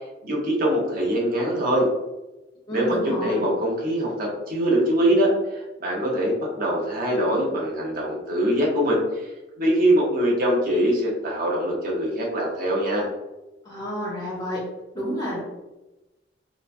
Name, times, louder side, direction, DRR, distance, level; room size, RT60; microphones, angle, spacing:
voice 1, 0.2-1.9 2.7-9.3 9.6-13.1, right 1 dB, 50° right, -2 dB, 0.8 m, -23 dB
voice 2, 2.7-3.5 13.6-14.7 14.9-15.4, equal, 25° left, -9 dB, 0.8 m, -29 dB
2.9 x 2.2 x 2.4 m, 1.0 s
head